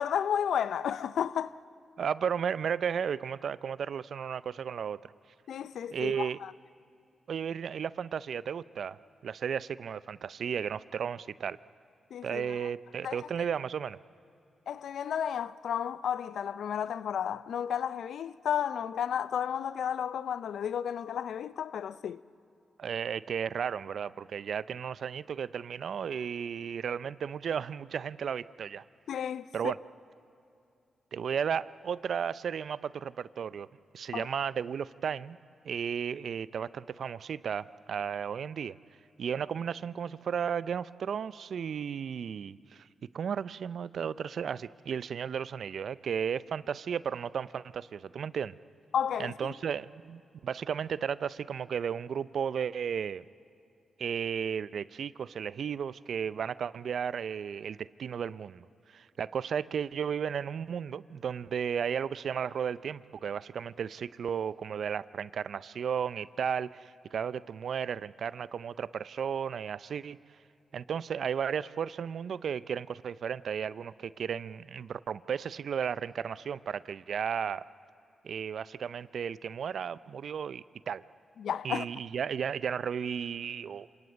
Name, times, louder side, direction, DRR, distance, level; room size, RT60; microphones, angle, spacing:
voice 1, 0.0-1.6 5.5-6.5 12.1-12.7 13.0-13.2 14.7-22.2 29.1-29.5 34.1-34.3 48.9-49.5 81.4-81.9, left 8 dB, 80° left, 0.5 m, -32 dB
voice 2, 2.0-5.0 5.9-6.4 7.3-9.0 9.2-11.6 12.2-14.0 22.8-28.8 29.5-29.8 31.1-33.7 33.9-35.4 35.6-38.7 39.2-42.9 43.1-48.5 49.2-53.2 54.0-58.6 58.9-70.2 70.7-77.6 78.2-81.0 81.6-83.9, right 7 dB, 70° right, 0.5 m, -34 dB
27.0 x 19.0 x 8.5 m
supercardioid pair, 45°, 0 cm